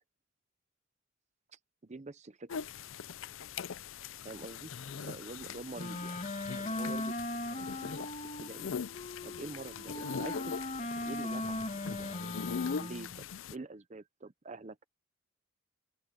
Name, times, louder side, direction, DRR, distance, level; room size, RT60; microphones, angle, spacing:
voice 1, 1.8-2.7 4.2-4.7 5.0-6.2 6.6-7.1 7.5-8.0 8.4-8.7 9.2-13.3 13.5-14.8, right 3 dB, 35° right, 0.7 m, -46 dB
sound 1, 2.5-13.5, left 6 dB, 80° left, 0.5 m, -41 dB
Wind instrument woodwind instrument, 5.8-13.2, left 2 dB, 35° left, 1.6 m, -39 dB
open air
head